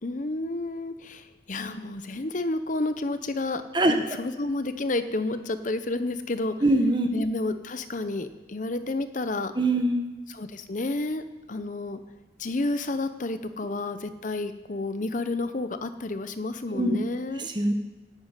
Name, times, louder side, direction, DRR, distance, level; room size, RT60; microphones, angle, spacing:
voice 1, 0.0-6.6 7.1-9.5 10.3-12.0 12.4-17.5, left 2 dB, 40° left, 10 dB, 0.7 m, -30 dB
voice 2, 3.7-4.2 6.6-7.1 9.6-10.1 16.7-17.0 17.5-17.7, right 1 dB, 25° right, 5 dB, 1.1 m, -22 dB
9.2 x 9.2 x 9.0 m, 1.2 s
head